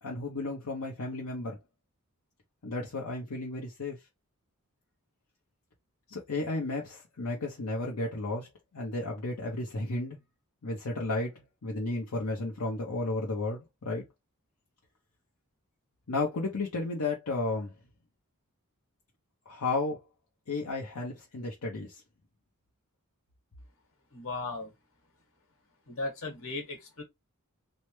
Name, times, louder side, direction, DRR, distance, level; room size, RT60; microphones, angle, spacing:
voice 1, 0.0-1.6 2.6-4.0 6.1-8.5 8.7-10.2 10.6-14.0 16.1-17.7 19.5-20.0 20.5-22.0, left 2 dB, 80° left, 0.8 m, -33 dB
voice 2, 24.1-24.7 25.9-27.0, left 3 dB, 65° left, 1.4 m, -36 dB
3.2 x 2.1 x 3.1 m
head